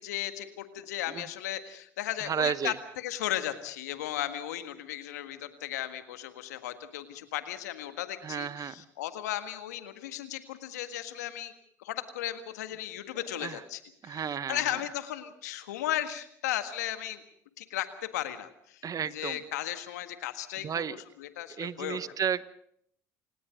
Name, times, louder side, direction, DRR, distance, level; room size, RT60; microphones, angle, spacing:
voice 1, 0.0-11.5 11.8-14.2 14.5-17.2 17.6-18.8 19.1-20.9 21.2-22.0, left 13 dB, 85° left, 9 dB, 1.7 m, -35 dB
voice 2, 2.2-2.8 8.2-8.8 13.4-13.6 14.0-14.8 18.8-19.4 20.6-21.0 21.6-22.4, right 7 dB, 40° right, 16 dB, 1.2 m, -32 dB
28.0 x 18.5 x 5.2 m, 0.67 s
hypercardioid pair, 65°, 9 cm